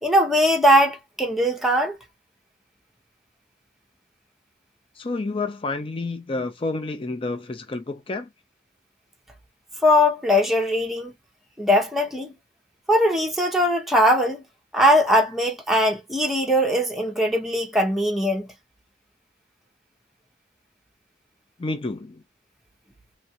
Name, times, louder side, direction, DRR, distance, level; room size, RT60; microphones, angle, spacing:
voice 1, 0.0-1.9 9.8-11.1 11.6-12.3 12.9-14.4 14.7-18.5, equal, ahead, 0.8 m, -20 dB
voice 2, 5.0-8.3 21.6-22.2, left 3 dB, 30° left, 0.5 m, -29 dB
3.2 x 2.4 x 2.8 m
head